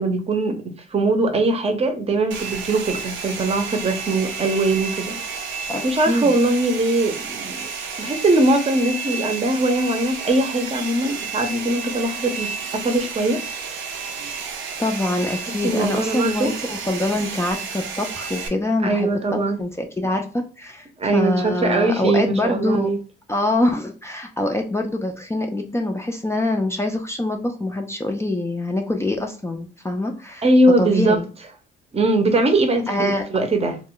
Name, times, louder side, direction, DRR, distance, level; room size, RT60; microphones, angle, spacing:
voice 1, 0.0-7.7 8.0-13.4 15.6-16.5 18.8-19.6 21.0-23.0 30.4-31.2 31.9-33.8, right 2 dB, 30° right, 0.6 m, -21 dB
Domestic sounds home sounds, 2.3-18.5, right 5 dB, 75° right, 0.5 m, -31 dB
voice 2, 5.7-6.3 14.8-20.2 20.6-20.8 21.1-22.9 23.3-30.4 30.8-31.3 32.9-33.2, left 1 dB, 15° left, 0.4 m, -24 dB
2.2 x 2.2 x 3.6 m
cardioid pair, 90°, 20 cm